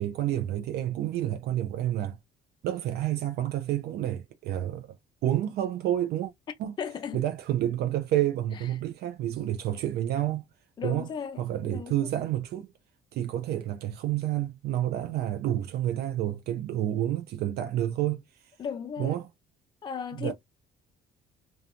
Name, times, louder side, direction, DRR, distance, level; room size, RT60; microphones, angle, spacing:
voice 1, 0.0-2.2 2.6-5.0 5.2-6.3 6.6-6.7 7.1-10.4 10.8-11.1 11.4-12.7 13.1-18.5 19.0-19.3 20.1-20.3, right 12 dB, 70° right, 0.4 m, -29 dB
voice 2, 6.8-7.2 10.8-11.9 18.6-19.2 19.8-20.3, left 7 dB, 25° left, 0.4 m, -35 dB
2.5 x 2.2 x 2.7 m
cardioid pair, 110°, 17 cm